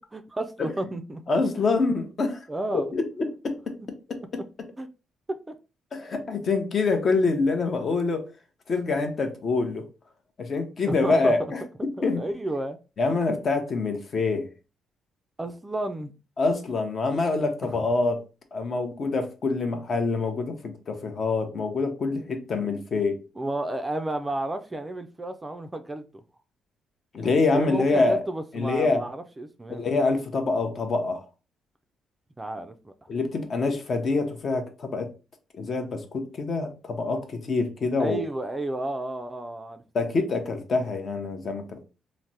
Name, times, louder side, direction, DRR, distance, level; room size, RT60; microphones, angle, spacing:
voice 1, 0.1-1.2 1.6-1.7 2.5-2.9 4.8-4.9 5.3-5.6 6.4-6.5 10.9-11.3 12.0-12.8 13.0-13.2 15.4-16.1 23.4-26.0 27.5-29.9 32.4-32.9 38.0-39.8, right 1 dB, 20° right, 0.3 m, -32 dB
voice 2, 1.3-2.5 2.7-3.8 4.1-4.7 5.9-8.3 8.7-9.9 10.4-12.2 13.0-14.5 16.4-18.2 18.5-23.2 27.1-28.2 28.5-29.0 29.7-31.3 33.1-35.1 35.5-38.2 39.9-41.9, left 3 dB, 50° left, 0.7 m, -26 dB
3.2 x 2.0 x 2.7 m
cardioid pair, 90°, 0 cm